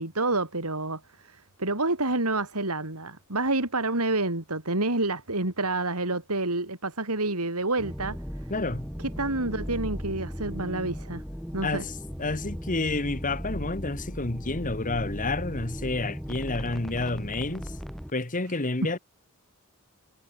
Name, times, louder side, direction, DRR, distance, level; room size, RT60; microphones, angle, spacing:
voice 1, 0.0-8.2 9.0-11.2 11.5-11.8, right 2 dB, 85° right, 4.7 m, -28 dB
sound 1, 7.8-18.1, equal, ahead, 4.6 m, -37 dB
voice 2, 8.5-8.9 11.6-17.7 18.1-19.0, left 2 dB, 35° left, 1.9 m, -30 dB
head